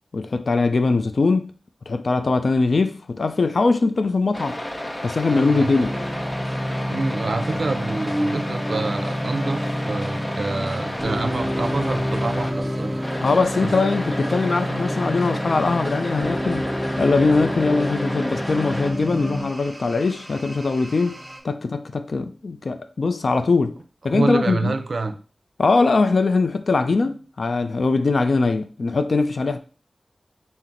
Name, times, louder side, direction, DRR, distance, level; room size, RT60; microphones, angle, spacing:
voice 1, 0.1-1.5 1.9-4.6 5.0-6.0 13.2-16.7 17.0-21.2 21.4-23.8 24.0-24.7 25.6-29.6, left 3 dB, 70° left, 0.4 m, -21 dB
sound 1, 4.3-12.5 13.0-18.9, left 1 dB, 20° left, 0.6 m, -32 dB
sound 2, 5.2-21.4, right 1 dB, 30° right, 1.0 m, -41 dB
voice 2, 5.3-5.8 6.9-13.0 13.6-13.7 24.1-25.2, right 3 dB, 80° right, 0.4 m, -27 dB
sound 3, 5.8-19.4, equal, 5° left, 1.0 m, -28 dB
5.8 x 2.0 x 3.7 m
wide cardioid pair, 85°, 0 cm